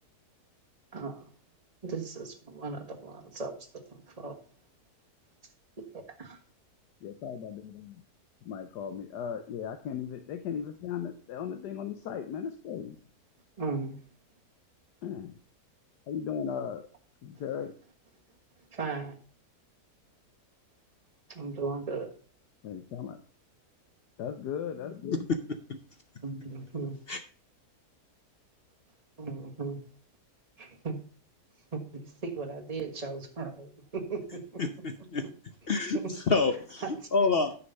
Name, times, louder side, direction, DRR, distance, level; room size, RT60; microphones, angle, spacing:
voice 1, 0.9-1.2 1.8-4.4 5.9-6.4 13.6-14.0 18.7-19.2 21.3-22.1 26.2-27.0 29.2-29.8 30.6-31.0 31.7-34.6 36.8-36.9 37.2-37.3, right 4 dB, 25° right, 2 dB, 1.4 m, -37 dB
voice 2, 7.0-8.0 8.4-13.0 15.0-15.3 16.1-16.9 17.2-17.7 22.6-23.2 24.2-25.3, left 8 dB, 85° left, 7 dB, 1.4 m, -37 dB
voice 3, 34.6-35.3 35.7-37.5, left 4 dB, 50° left, 8 dB, 0.7 m, -28 dB
9.7 x 5.8 x 5.3 m, 0.41 s
omnidirectional pair, 1.7 m